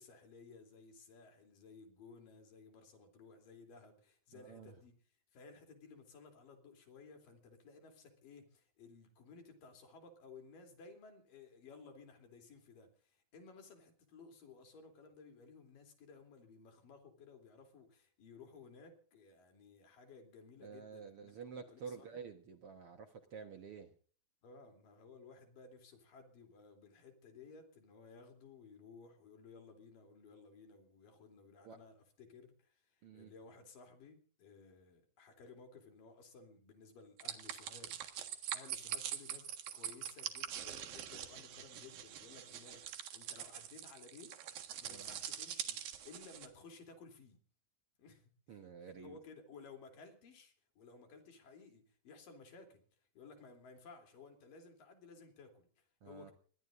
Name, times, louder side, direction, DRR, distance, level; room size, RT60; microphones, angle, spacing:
voice 1, 0.0-5.0 5.3-22.2 24.4-47.4 48.0-56.3, left 4 dB, 75° left, 4 dB, 4.8 m, -57 dB
voice 2, 4.3-4.7 20.6-23.9 31.6-31.8 33.0-33.3 44.9-45.2 48.5-49.2 56.0-56.3, right 6 dB, 55° right, 6 dB, 1.7 m, -50 dB
sound 1, 37.2-46.5, right 10 dB, 80° right, 3.4 m, -44 dB
24.0 x 21.0 x 2.6 m, 0.44 s
omnidirectional pair, 4.0 m